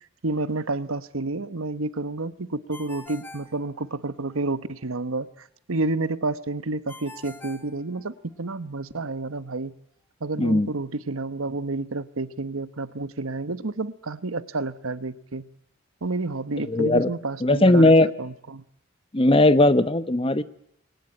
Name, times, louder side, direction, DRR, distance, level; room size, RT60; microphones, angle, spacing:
voice 1, 0.2-9.7 10.2-15.5 16.0-18.6, right 2 dB, 85° right, 14 dB, 1.1 m, -30 dB
Ringtone, 2.7-4.3 6.9-8.5, left 2 dB, 10° left, 2.0 m, -45 dB
voice 2, 10.4-10.7 16.7-17.1 17.4-18.1 19.1-20.4, left 1 dB, 25° left, 14 dB, 0.9 m, -18 dB
22.0 x 20.0 x 8.6 m, 0.71 s
head